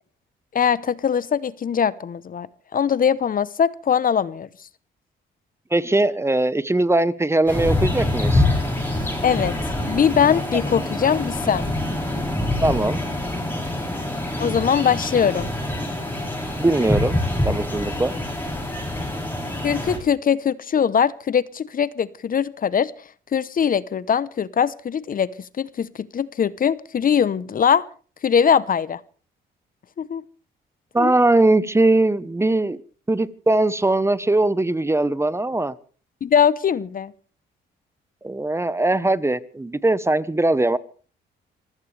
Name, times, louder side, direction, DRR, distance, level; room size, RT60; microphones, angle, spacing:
voice 1, 0.5-2.5 2.7-4.5 9.2-9.5 9.8-11.7 14.4-15.5 19.6-22.9 23.3-25.3 25.6-27.8 28.2-29.0 30.0-30.2 31.0-31.1 36.2-37.1, left 7 dB, 45° left, 18 dB, 0.9 m, -21 dB
voice 2, 5.7-8.4 12.6-13.0 16.6-17.2 17.4-18.1 30.9-32.8 33.1-35.7 38.2-40.8, right 2 dB, 15° right, 17 dB, 1.0 m, -20 dB
sound 1, 7.5-20.0, left 1 dB, 10° left, 7.6 m, -25 dB
26.0 x 16.0 x 3.4 m, 0.40 s
cardioid pair, 90°, 20 cm